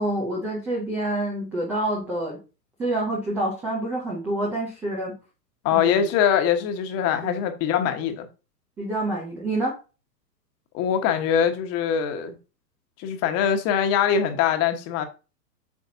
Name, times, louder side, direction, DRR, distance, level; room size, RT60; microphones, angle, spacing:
voice 1, 0.0-2.4 2.8-5.1 5.7-6.1 7.2-7.4 8.8-9.7, right 1 dB, 5° right, 0.3 m, -27 dB
voice 2, 5.6-8.3 10.7-12.4 13.0-15.0, left 8 dB, 30° left, 1.2 m, -23 dB
8.4 x 5.8 x 2.7 m
hypercardioid pair, 115°, 49 cm